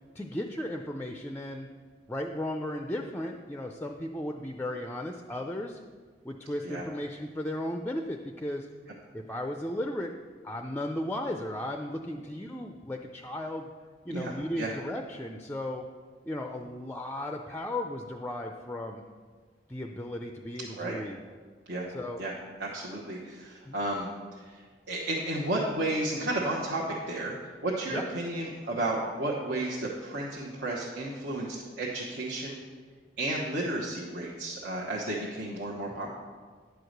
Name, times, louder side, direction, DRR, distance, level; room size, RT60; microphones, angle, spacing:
voice 1, 0.1-1.7 2.1-5.8 6.2-8.7 9.1-10.1 10.4-13.7 14.1-15.9 16.2-19.0 19.7-21.2 21.9-22.2 23.7-23.8 27.9-28.0, left 1 dB, 10° left, 3 dB, 0.4 m, -35 dB
voice 2, 14.1-14.7 20.7-21.0 21.7-21.9 22.2-22.3 22.6-24.1 24.4-32.6 33.2-36.1, right 1 dB, 70° right, -4 dB, 1.1 m, -33 dB
10.5 x 4.7 x 6.6 m, 1.6 s
head